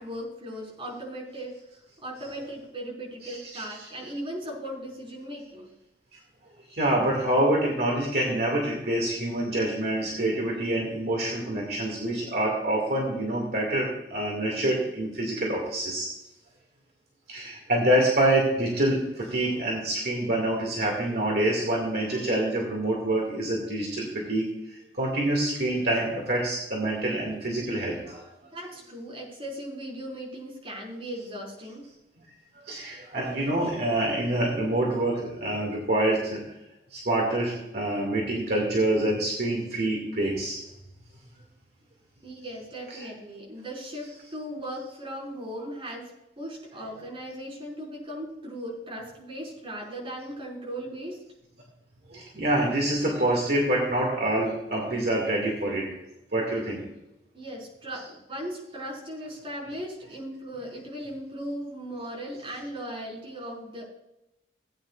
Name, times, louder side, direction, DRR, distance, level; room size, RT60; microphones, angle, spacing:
voice 1, 0.0-1.6 2.0-5.7 28.4-31.9 42.2-46.1 46.4-51.2 57.3-63.8, equal, 30° right, -3 dB, 4.8 m, -38 dB
voice 2, 3.2-3.6 6.7-16.1 17.3-28.3 32.6-36.4 36.9-40.6 42.9-43.1 52.1-55.9 56.3-56.8, right 1 dB, 60° right, -2 dB, 2.3 m, -26 dB
18.0 x 9.2 x 2.5 m, 0.88 s
head